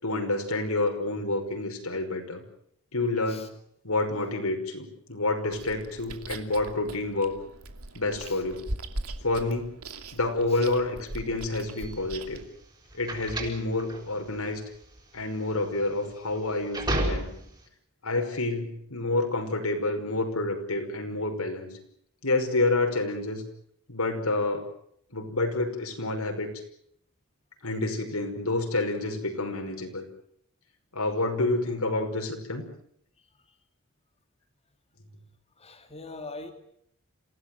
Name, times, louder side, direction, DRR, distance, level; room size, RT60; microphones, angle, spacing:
voice 1, 0.0-2.4 2.9-3.5 3.8-7.3 8.0-8.6 9.2-9.7 10.1-12.4 12.9-14.6 15.1-17.3 18.0-21.7 22.2-23.4 23.9-24.7 25.1-26.5 27.6-30.0 30.9-32.6, left 2 dB, 85° left, 4 dB, 5.6 m, -28 dB
Chewing mastication, 5.5-12.5, right 2 dB, 85° right, 2.7 m, -40 dB
sound 1, 11.7-17.7, right 1 dB, 20° right, 6.1 m, -33 dB
voice 2, 35.6-36.5, left 3 dB, 30° left, 4 dB, 2.4 m, -42 dB
27.5 x 17.0 x 9.4 m, 0.71 s
head